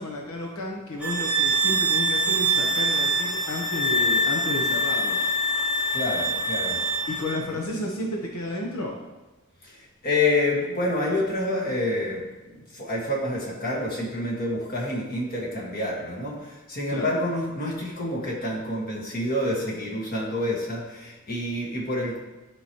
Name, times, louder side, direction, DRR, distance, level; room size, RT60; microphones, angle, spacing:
voice 1, 0.0-5.2 7.1-9.0 16.9-17.2, left 1 dB, 80° left, -1 dB, 1.0 m, -32 dB
sound 1, 1.0-7.4, right 1 dB, 5° right, 0.8 m, -24 dB
voice 2, 5.9-6.8 9.6-22.2, left 1 dB, 40° left, -3 dB, 1.7 m, -28 dB
12.0 x 4.9 x 3.0 m, 1.1 s
head